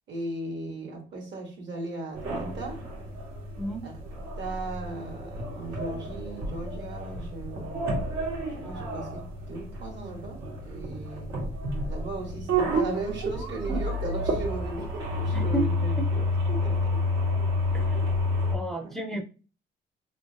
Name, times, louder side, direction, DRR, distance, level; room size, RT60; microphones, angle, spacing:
voice 1, 0.1-2.9 3.8-4.0 4.4-7.9 8.5-11.4 11.9-17.2 18.7-19.0, right 2 dB, 65° right, 3 dB, 1.3 m, -37 dB
sound 1, 2.1-18.5, left 1 dB, 90° right, 1.3 m, -30 dB
voice 2, 3.6-3.9 13.7-13.8 15.3-15.7 17.7-19.2, right 2 dB, ahead, 3 dB, 0.5 m, -33 dB
3.0 x 2.8 x 2.7 m, 0.35 s
cardioid pair, 90°, 20 cm